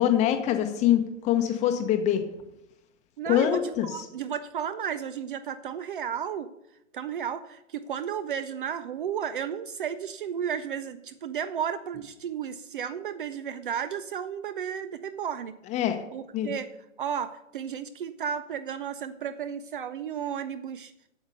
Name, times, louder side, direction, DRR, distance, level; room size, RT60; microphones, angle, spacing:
voice 1, 0.0-2.2 3.3-3.9 15.7-16.0 16.3-16.5, left 11 dB, 15° left, 7 dB, 0.9 m, -24 dB
voice 2, 3.2-6.5 6.9-15.5 16.1-16.7 17.0-20.9, right 8 dB, 40° right, 12 dB, 0.5 m, -33 dB
8.5 x 7.0 x 6.6 m, 0.85 s
hypercardioid pair, 130°, 40 cm